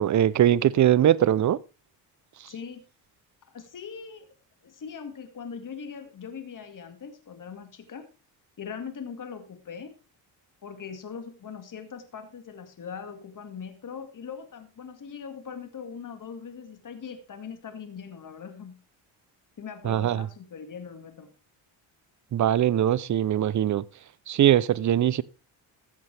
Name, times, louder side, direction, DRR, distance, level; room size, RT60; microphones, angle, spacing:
voice 1, 0.0-1.6 2.4-2.5 19.8-20.3 22.3-23.8 24.3-25.2, right 11 dB, 40° right, 0.6 m, -21 dB
voice 2, 2.4-2.8 3.5-4.3 4.6-8.1 8.6-9.9 10.6-18.8 19.6-21.3, left 6 dB, 40° left, 2.1 m, -40 dB
14.0 x 8.2 x 3.4 m
supercardioid pair, 75°, 46 cm